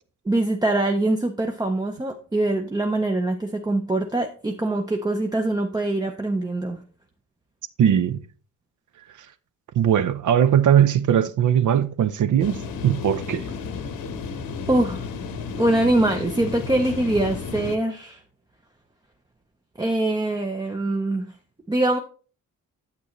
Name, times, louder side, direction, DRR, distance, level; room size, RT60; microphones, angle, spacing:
voice 1, 0.3-6.8 14.7-15.0 15.6-18.2 19.8-21.3 21.7-22.0, right 2 dB, 10° right, 0.5 m, -23 dB
voice 2, 7.8-8.2 9.7-13.5, right 9 dB, 60° right, 0.6 m, -19 dB
sound 1, 12.4-17.8, left 5 dB, 80° left, 1.0 m, -33 dB
8.9 x 8.2 x 3.0 m
wide cardioid pair, 165°, 34 cm